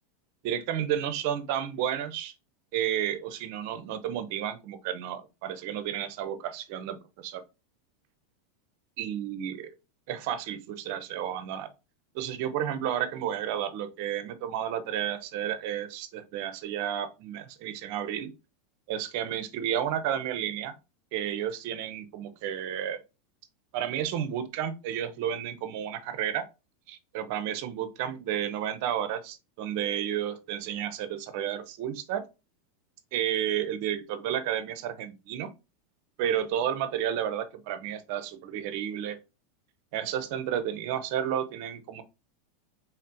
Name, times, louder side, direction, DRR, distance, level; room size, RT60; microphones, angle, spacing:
voice 1, 0.4-2.3 2.7-7.4 9.0-9.7 10.1-11.7 12.1-18.3 18.9-20.7 21.1-23.0 23.7-26.4 26.9-32.2 33.1-35.5 36.2-39.2 39.9-42.0, right 10 dB, 60° right, 0.7 m, -32 dB
4.2 x 3.8 x 2.7 m
supercardioid pair, 125°, 0 cm